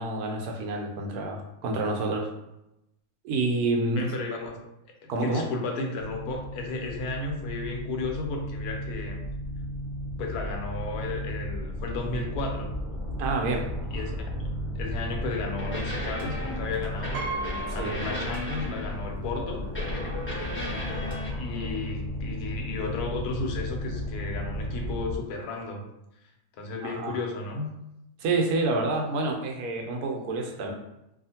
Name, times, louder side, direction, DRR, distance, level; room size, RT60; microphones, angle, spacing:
voice 1, 0.0-2.3 3.2-4.1 5.1-5.5 13.2-13.7 17.7-18.0 26.8-27.2 28.2-30.7, right 2 dB, 85° right, 2 dB, 1.1 m, -28 dB
voice 2, 3.9-4.5 5.0-9.2 10.2-12.7 13.9-14.2 14.8-17.2 17.7-19.7 21.4-25.8 26.6-27.7, left 3 dB, 90° left, 2 dB, 1.2 m, -33 dB
sound 1, 6.0-25.2, equal, 50° left, 0.6 m, -34 dB
sound 2, 15.6-19.1 19.7-21.3, left 1 dB, 10° left, 0.7 m, -36 dB
Piano, 17.1-19.0 19.3-19.4 20.5-20.6 20.9-21.2, right 3 dB, 65° right, 0.7 m, -37 dB
2.7 x 2.4 x 2.7 m, 0.87 s
omnidirectional pair, 1.6 m